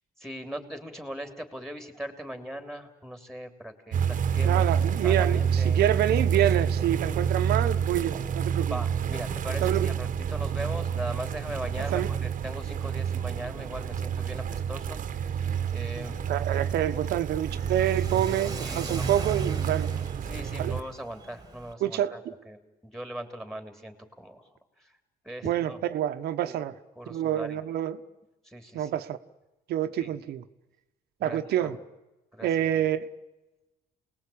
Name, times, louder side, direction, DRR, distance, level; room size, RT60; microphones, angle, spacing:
voice 1, 0.2-4.7 5.0-5.9 8.7-16.2 18.6-19.1 20.3-25.0 25.2-25.9 26.5-26.7 26.9-27.6 28.4-28.9 30.0-30.1 31.2-31.8 32.3-32.5, right 1 dB, ahead, 3.3 m, -40 dB
sound 1, 3.9-20.8, right 7 dB, 50° right, 1.4 m, -28 dB
voice 2, 4.4-8.8 9.6-10.0 11.8-12.1 16.3-19.9 20.6-20.8 21.8-22.2 25.4-26.7 27.1-28.0 28.7-29.2 29.7-30.4 31.2-31.8 32.4-33.1, right 11 dB, 70° right, 1.3 m, -27 dB
Car / Accelerating revving vroom, 15.6-21.7, right 4 dB, 20° right, 2.1 m, -38 dB
28.5 x 20.0 x 8.7 m
cardioid pair, 110°, 17 cm